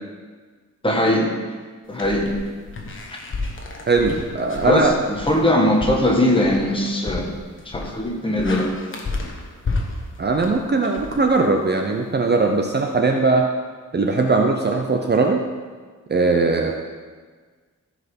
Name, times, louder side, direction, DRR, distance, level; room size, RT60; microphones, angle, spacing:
voice 1, 0.8-1.3 1.9-2.3 4.6-7.3 7.7-8.7, left 1 dB, 15° left, 0 dB, 1.4 m, -20 dB
sound 1, 1.9-11.8, left 3 dB, 40° left, 1.3 m, -32 dB
voice 2, 3.9-5.0 10.2-13.5 13.9-15.4 16.1-16.7, right 3 dB, 30° right, 3 dB, 0.6 m, -19 dB
14.5 x 5.0 x 5.2 m, 1.5 s
wide cardioid pair, 170°, 32 cm